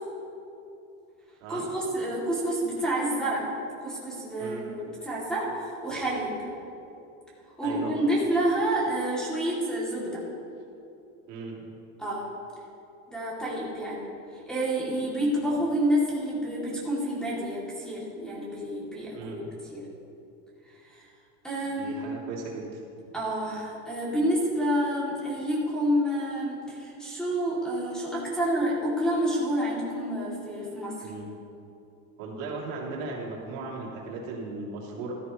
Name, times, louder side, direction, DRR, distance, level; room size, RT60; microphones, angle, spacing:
voice 1, 1.5-3.5 3.8-6.4 7.6-10.2 12.0-12.3 13.1-14.0 14.5-19.8 20.9-21.0 21.4-22.1 23.1-31.1, right 1 dB, ahead, -7 dB, 2.6 m, -28 dB
voice 2, 7.6-7.9 11.3-11.6 19.1-19.5 21.6-22.7 31.0-31.3 32.2-35.1, right 3 dB, 75° right, -3 dB, 3.0 m, -37 dB
15.5 x 13.5 x 3.1 m, 2.8 s
cardioid pair, 165°, 40 cm